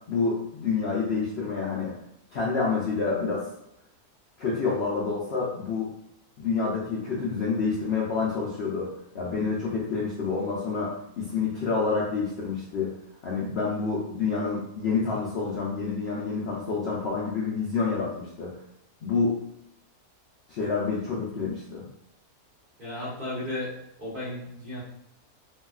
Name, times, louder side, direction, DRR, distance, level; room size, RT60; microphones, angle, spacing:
voice 1, 0.1-1.9 2.3-3.5 4.4-5.9 6.4-12.9 13.2-18.5 19.0-19.4 20.5-21.8, left 4 dB, 65° left, -5 dB, 0.6 m, -28 dB
voice 2, 22.8-24.8, left 1 dB, 40° right, -8 dB, 1.0 m, -34 dB
3.1 x 2.7 x 2.3 m, 0.75 s
omnidirectional pair, 1.6 m